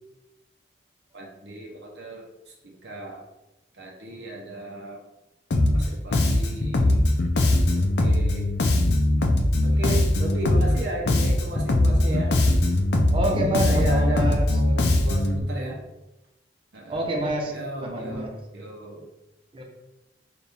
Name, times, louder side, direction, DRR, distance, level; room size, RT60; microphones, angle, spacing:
voice 1, 1.1-3.3 3.7-5.0 5.7-7.0 7.7-8.5 9.6-12.3 13.3-15.8 16.7-17.1 17.5-19.1, right 2 dB, 75° right, -2 dB, 0.8 m, -34 dB
Bass guitar, 5.5-5.9 6.1-10.8 11.1-15.4, left 1 dB, 70° left, 0.5 m, -21 dB
voice 2, 13.1-14.6 16.9-17.5 17.8-18.3 19.5-19.6, right 1 dB, 30° right, 1 dB, 0.7 m, -27 dB
4.5 x 2.5 x 3.4 m, 0.95 s
head